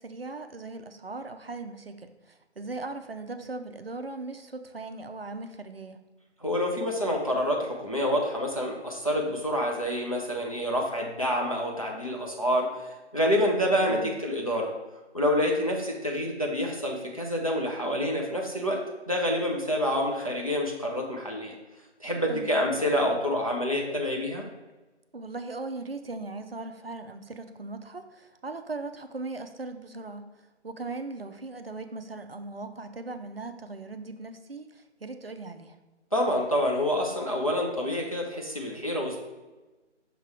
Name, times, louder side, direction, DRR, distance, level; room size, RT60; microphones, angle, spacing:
voice 1, 0.0-6.0 13.9-14.1 22.3-22.6 25.1-35.8, right 3 dB, 55° right, 8 dB, 0.5 m, -39 dB
voice 2, 6.4-14.7 15.1-21.6 22.0-24.5 36.1-39.2, equal, 30° left, 0 dB, 0.6 m, -27 dB
5.9 x 3.6 x 4.6 m, 1.2 s
figure-of-eight pair, 160°, 35 cm